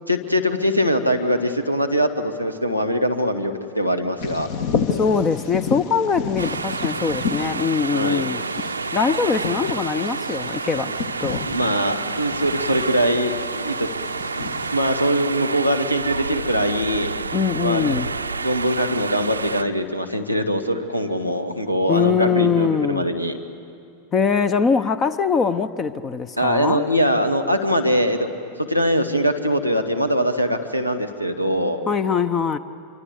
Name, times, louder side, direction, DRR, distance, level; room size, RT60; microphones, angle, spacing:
voice 1, 0.1-4.5 7.9-8.2 11.4-13.9 14.4-17.1 17.6-23.4 26.4-28.3 28.6-31.8, equal, 90° left, 8 dB, 1.5 m, -22 dB
Bird vocalization bird call bird song, 4.2-14.7, left 6 dB, 50° left, 1.4 m, -31 dB
voice 2, 4.9-8.4 8.9-10.9 11.2-11.4 17.3-18.1 21.9-23.1 24.1-26.8 31.9-32.6, left 6 dB, 25° left, 14 dB, 0.7 m, -22 dB
sound 1, 6.4-19.6, right 4 dB, 80° right, 0.6 m, -29 dB
26.0 x 24.0 x 8.0 m, 2.4 s
figure-of-eight pair, 90°, 0 cm